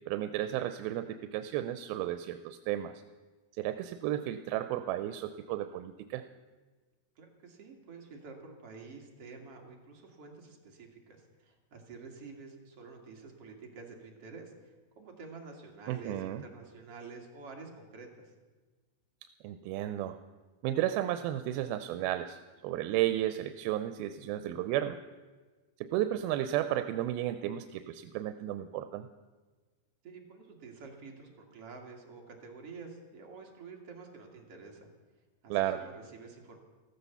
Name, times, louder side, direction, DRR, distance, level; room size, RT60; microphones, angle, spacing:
voice 1, 0.1-3.0 3.6-6.2 15.9-16.4 19.4-20.2 20.6-25.0 25.8-29.1 35.5-35.8, right 13 dB, 90° right, 10 dB, 2.5 m, -33 dB
voice 2, 7.2-18.3 30.0-34.9 35.4-36.6, right 4 dB, 45° right, 1 dB, 2.9 m, -49 dB
14.5 x 14.0 x 7.0 m, 1.3 s
omnidirectional pair, 4.2 m